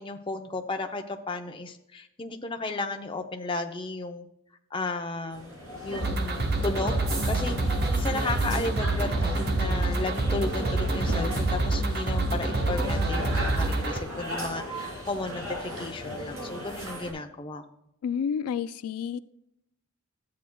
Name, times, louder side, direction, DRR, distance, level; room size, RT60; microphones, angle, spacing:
voice 1, 0.0-4.3 4.7-5.5 5.8-17.6, left 3 dB, 25° left, 5 dB, 0.6 m, -34 dB
sound 1, 5.3-17.1, equal, 75° right, 2.9 m, -36 dB
sound 2, 6.0-14.0, right 2 dB, 45° right, 1.0 m, -27 dB
voice 2, 18.0-19.2, left 7 dB, 85° left, 15 dB, 0.3 m, -30 dB
12.5 x 8.4 x 2.3 m, 0.81 s
head